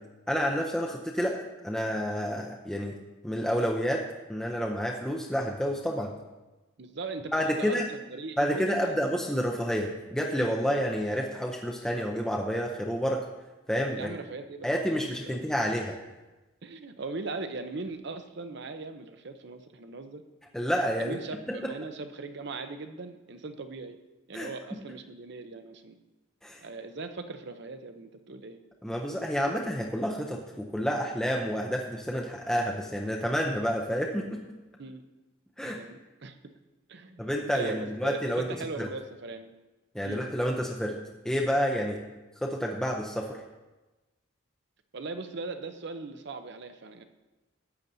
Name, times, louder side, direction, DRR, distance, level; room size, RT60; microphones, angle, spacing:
voice 1, 0.3-3.0 3.2-6.1 7.3-7.9 8.4-13.3 13.7-14.1 14.6-16.0 20.5-21.2 21.5-21.7 24.3-24.5 26.4-26.6 28.8-34.4 35.6-35.8 37.2-38.5 38.8-38.9 39.9-41.0 41.2-42.0 42.4-43.4, equal, 5° left, -1 dB, 0.5 m, -29 dB
voice 2, 6.8-7.8 8.1-9.0 14.0-14.7 15.0-15.4 16.6-20.2 21.0-24.0 24.3-26.0 26.6-28.6 34.8-35.0 35.8-36.4 36.9-39.5 40.0-40.2 44.9-47.0, right 3 dB, 55° right, 8 dB, 0.7 m, -39 dB
13.5 x 8.8 x 2.7 m, 1.1 s
head